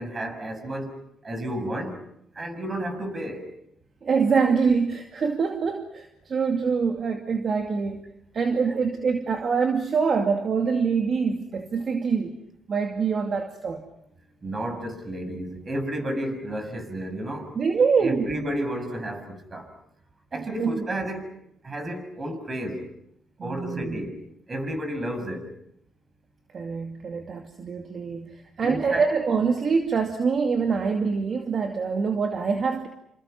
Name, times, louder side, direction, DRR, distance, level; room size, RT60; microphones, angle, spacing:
voice 1, 0.0-2.0 2.3-3.5 8.7-8.8 14.4-17.5 18.0-19.7 20.3-21.3 21.6-22.9 23.4-24.2 24.5-25.5 28.6-29.1, right 1 dB, 30° right, 8 dB, 6.8 m, -32 dB
voice 2, 4.0-12.4 12.7-13.8 17.6-18.3 20.3-20.9 23.4-24.0 26.5-32.9, right 5 dB, 50° right, 4 dB, 2.4 m, -25 dB
28.0 x 27.5 x 5.9 m, 0.76 s
cardioid pair, 85°, 0 cm